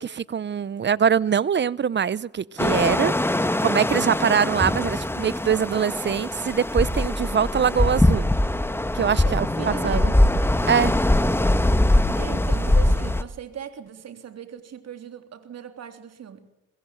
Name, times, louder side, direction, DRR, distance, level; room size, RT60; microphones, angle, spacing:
voice 1, 0.0-3.1 3.6-8.3 8.9-10.1 10.7-10.9, right 7 dB, 35° right, 0.7 m, -23 dB
sound 1, 2.6-13.2, left 1 dB, 10° left, 1.4 m, -22 dB
voice 2, 9.2-10.3 12.1-16.5, right 8 dB, 55° right, 3.4 m, -37 dB
23.5 x 21.5 x 7.8 m
cardioid pair, 90°, 30 cm